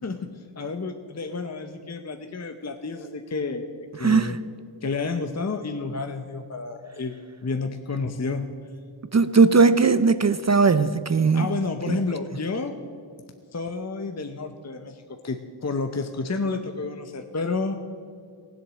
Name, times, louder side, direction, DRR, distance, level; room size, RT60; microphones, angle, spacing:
voice 1, 0.0-4.4 4.8-8.5 11.3-12.7 13.5-17.8, left 3 dB, 35° left, 0.8 m, -30 dB
voice 2, 4.0-4.4 9.1-11.5 11.9-12.0, right 4 dB, 35° right, 0.5 m, -18 dB
15.5 x 8.0 x 7.5 m
cardioid pair, 45°, 49 cm